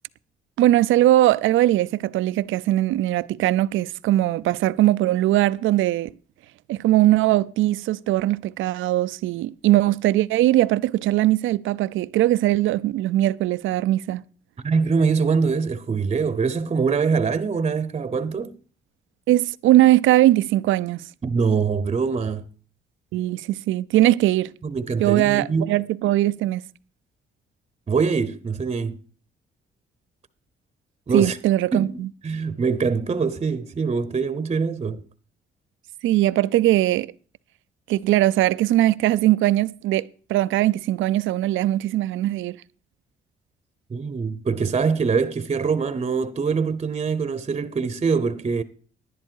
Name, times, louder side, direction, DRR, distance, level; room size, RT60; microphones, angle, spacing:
voice 1, 0.6-6.1 6.7-14.2 19.3-21.1 23.1-24.5 25.0-26.6 31.1-32.1 36.0-37.1 37.9-42.6, right 15 dB, 80° right, 0.5 m, -20 dB
voice 2, 14.6-18.6 21.2-22.4 24.6-25.7 27.9-29.0 31.1-31.4 31.7-32.0 32.2-35.0 43.9-48.6, right 5 dB, 30° right, 0.9 m, -23 dB
11.0 x 11.0 x 4.6 m
cardioid pair, 90°, 20 cm